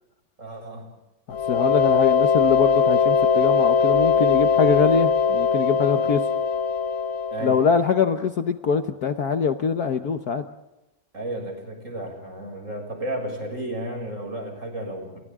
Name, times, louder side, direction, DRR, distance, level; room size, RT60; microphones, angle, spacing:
voice 1, 0.4-0.9 7.3-7.6 11.1-15.2, right 1 dB, 40° right, 3 dB, 7.0 m, -33 dB
sound 1, 1.3-7.9, left 5 dB, 85° left, 2.4 m, -21 dB
voice 2, 1.3-6.2 7.4-10.5, left 6 dB, 55° left, 7 dB, 1.4 m, -23 dB
30.0 x 28.5 x 3.7 m, 0.96 s
omnidirectional pair, 2.1 m